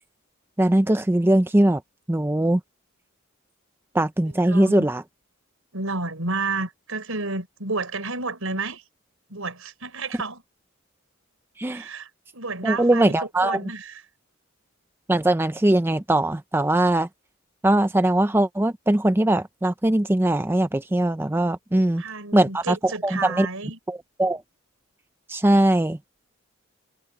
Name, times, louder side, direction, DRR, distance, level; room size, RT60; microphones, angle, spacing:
voice 1, 0.6-1.8 2.1-2.6 3.9-5.0 11.6-11.9 12.6-13.6 15.1-17.1 17.6-22.0 22.3-23.5 23.9-24.4 25.3-26.0, right 1 dB, 10° right, 0.4 m, -21 dB
voice 2, 4.5-4.9 5.7-8.8 9.3-10.4 11.7-12.1 12.3-13.2 13.4-14.0 21.7-23.8, right 3 dB, 75° right, 4.8 m, -31 dB
head